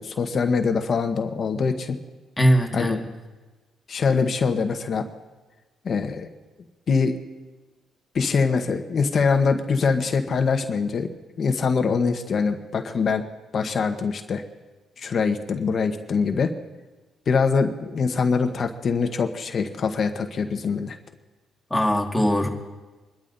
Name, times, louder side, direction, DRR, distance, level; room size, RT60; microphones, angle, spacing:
voice 1, 0.0-2.0 2.7-3.0 3.9-5.0 5.8-6.3 6.9-7.2 8.1-11.1 11.4-13.2 13.5-14.4 15.0-16.5 17.3-21.0, left 5 dB, 50° left, 6 dB, 1.1 m, -23 dB
voice 2, 2.4-3.0 21.7-22.5, equal, 10° left, 1 dB, 2.0 m, -20 dB
26.0 x 12.5 x 2.7 m, 1.2 s
cardioid pair, 90°, 0 cm